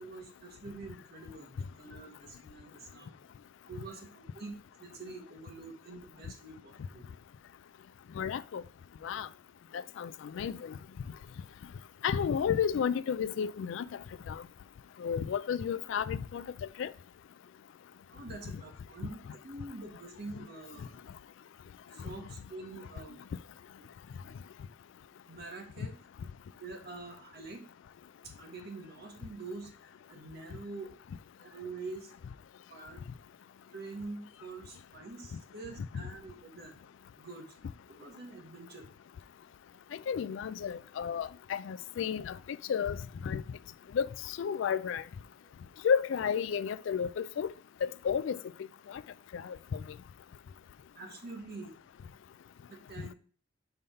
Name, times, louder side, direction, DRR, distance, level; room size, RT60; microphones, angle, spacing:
voice 1, 0.0-3.2 3.7-7.0 18.1-21.1 21.9-23.2 25.3-25.9 26.6-27.6 28.2-29.7 30.1-30.9 31.4-32.1 32.7-33.0 33.7-36.7 37.2-37.5 37.9-38.9 45.4-45.5 50.9-51.7 52.7-53.1, right 3 dB, 50° right, 1.3 m, -45 dB
voice 2, 8.2-8.6 9.0-9.3 9.7-10.8 12.0-13.8 14.3-14.4 15.0-16.4 16.8-16.9 35.9-36.0 40.1-43.0 43.2-43.4 43.9-45.0 45.8-47.5 47.8-48.4 48.9-49.0 49.3-49.8, left 7 dB, 70° left, 0.3 m, -32 dB
5.5 x 3.4 x 5.5 m
head